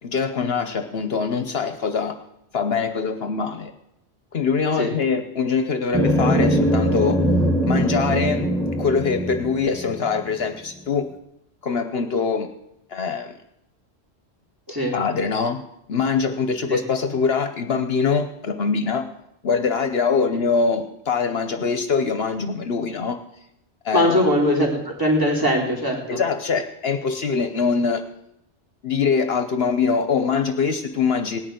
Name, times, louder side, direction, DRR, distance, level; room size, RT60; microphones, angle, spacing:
voice 1, 0.0-2.2 2.5-3.7 4.3-7.2 7.6-8.5 8.8-11.1 11.6-12.5 12.9-13.4 14.9-15.6 15.9-19.0 19.4-23.2 23.8-24.2 26.1-28.1 28.8-31.4, left 5 dB, 60° left, 8 dB, 1.1 m, -23 dB
sound 1, 5.9-10.4, equal, 5° left, 2.1 m, -21 dB
voice 2, 23.9-26.2, equal, 20° right, -1 dB, 4.1 m, -21 dB
18.0 x 6.6 x 9.2 m, 0.79 s
omnidirectional pair, 1.2 m